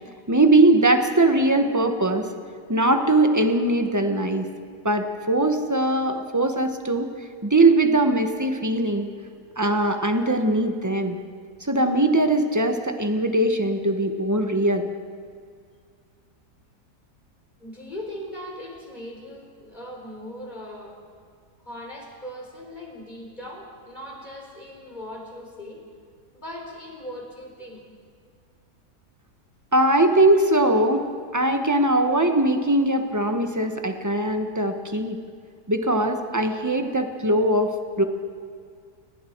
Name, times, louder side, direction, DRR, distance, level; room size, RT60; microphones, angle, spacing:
voice 1, 0.3-2.3 2.7-4.5 4.8-7.1 7.4-9.1 9.6-11.2 11.6-14.9 29.7-31.0 31.3-35.2 35.7-37.7 38.0-38.1, right 2 dB, 10° right, 6 dB, 1.2 m, -21 dB
voice 2, 17.6-21.0 21.6-25.8 26.3-27.8, left 1 dB, 25° left, 0 dB, 4.1 m, -39 dB
29.5 x 19.0 x 4.7 m, 2.1 s
omnidirectional pair, 1.8 m